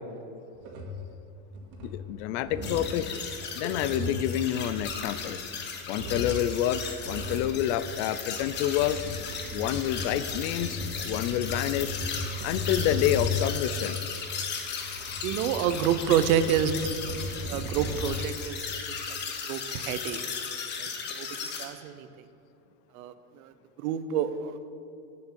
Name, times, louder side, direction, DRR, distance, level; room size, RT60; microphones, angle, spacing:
sound 1, 0.6-1.1 1.5-2.1 2.4-3.0 3.5-5.5 5.9-6.5 7.0-7.5 8.2-13.6 14.6-18.3, left 2 dB, 55° right, 1.9 m, -36 dB
voice 1, 1.8-3.1 3.5-5.4 5.9-9.0 9.5-12.0 12.4-14.0, left 12 dB, 55° left, 15 dB, 0.5 m, -28 dB
sound 2, 2.6-21.7, left 6 dB, 25° left, 0.9 m, -36 dB
voice 2, 15.2-16.7 17.5-18.6 19.1-19.2 19.5-20.2 20.8-21.3 21.6-22.1 22.9-23.5 23.8-24.7, right 9 dB, 90° right, 12 dB, 0.8 m, -28 dB
8.6 x 8.0 x 7.0 m, 2.6 s
cardioid pair, 165°, 41 cm